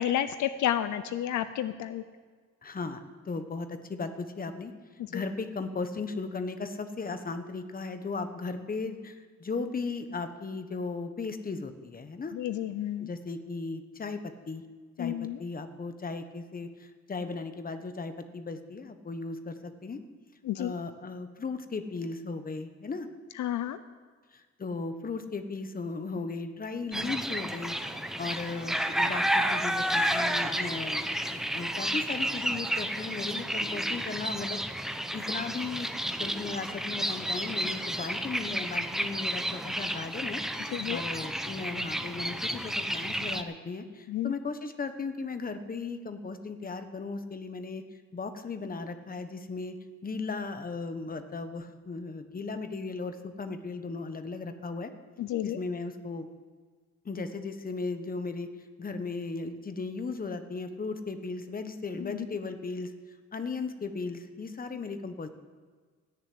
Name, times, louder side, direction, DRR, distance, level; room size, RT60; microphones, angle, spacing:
voice 1, 0.0-2.0 5.0-5.2 12.3-13.1 15.0-15.4 20.4-20.7 23.3-23.8 40.7-41.0 44.1-44.3 55.2-55.6 62.0-62.2, left 11 dB, 75° left, 12 dB, 0.7 m, -31 dB
voice 2, 2.6-3.0 3.3-4.7 5.1-12.3 13.0-14.6 15.0-20.0 20.5-23.1 24.3-27.7 28.2-31.0 31.3-34.6 35.1-47.8 48.1-49.8 50.0-54.9 55.4-56.3 57.0-58.5 58.8-62.9 63.3-65.3, left 4 dB, 30° left, 8 dB, 1.3 m, -36 dB
sound 1, 26.9-43.4, equal, ahead, 0.8 m, -31 dB
15.0 x 7.1 x 9.6 m, 1.5 s
cardioid pair, 90°, 30 cm